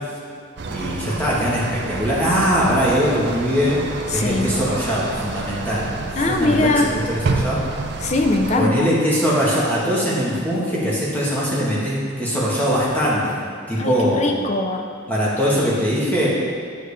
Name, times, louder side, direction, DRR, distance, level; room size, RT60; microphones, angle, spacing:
sound 1, 0.6-8.6, right 3 dB, 55° right, 0.5 m, -29 dB
voice 1, 0.7-3.8 4.1-7.6 8.6-13.4 13.7-14.2 15.1-16.3, equal, 10° left, -7 dB, 1.3 m, -21 dB
voice 2, 4.1-4.5 6.2-6.9 8.0-8.9 13.8-14.8, left 2 dB, 35° left, 3 dB, 0.5 m, -21 dB
7.7 x 6.6 x 3.3 m, 2.2 s
head